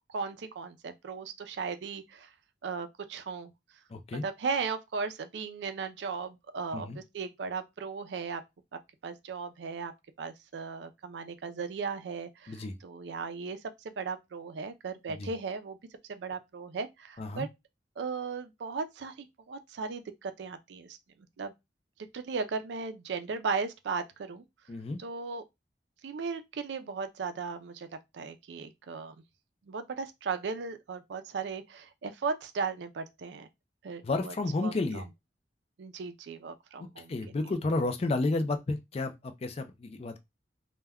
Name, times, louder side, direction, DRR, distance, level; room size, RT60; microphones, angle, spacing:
voice 1, 0.1-2.3 2.6-3.5 4.1-8.4 9.0-9.9 10.2-13.6 13.8-15.8 16.1-17.5 18.0-21.0 21.4-21.5 22.1-24.4 25.0-25.4 26.0-27.9 28.1-29.1 29.7-33.5 33.8-34.3 34.6-35.0 35.8-37.1, right 5 dB, 80° right, 0.4 m, -36 dB
voice 2, 3.9-4.2 6.7-7.0 12.5-12.8 15.1-15.3 17.2-17.5 24.7-25.0 34.0-35.0 37.1-40.2, left 2 dB, 35° left, 0.4 m, -31 dB
2.2 x 2.1 x 3.4 m
head